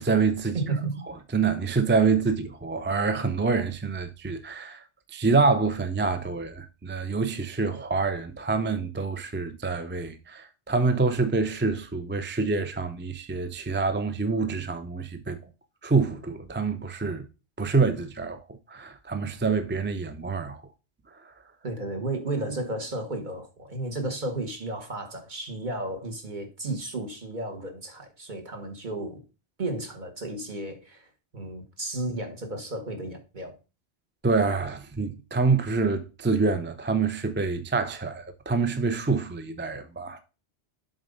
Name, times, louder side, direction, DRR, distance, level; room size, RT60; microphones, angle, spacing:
voice 1, 0.0-0.6 1.1-15.4 15.8-17.2 17.6-20.6 21.1-21.3 34.2-40.2, right 4 dB, 15° right, 0.4 m, -26 dB
voice 2, 0.5-1.0 21.6-29.2 29.6-33.6, right 2 dB, 45° right, 1.5 m, -33 dB
7.3 x 3.9 x 5.2 m
omnidirectional pair, 1.1 m